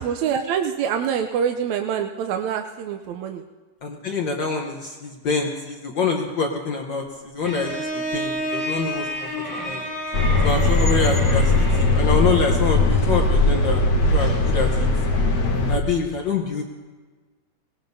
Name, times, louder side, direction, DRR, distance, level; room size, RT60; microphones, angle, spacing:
voice 1, 0.0-3.4, right 8 dB, 75° right, 4 dB, 1.8 m, -25 dB
voice 2, 3.8-7.9 8.1-9.3 9.6-9.8 10.4-11.5 11.8-14.9 15.7-16.6, left 4 dB, 85° left, 1 dB, 1.0 m, -25 dB
Bowed string instrument, 7.4-12.3, equal, 10° right, 4.0 m, -30 dB
sound 1, 10.1-15.8, left 2 dB, 60° left, 0.9 m, -19 dB
24.0 x 19.5 x 2.7 m, 1.4 s
omnidirectional pair, 3.5 m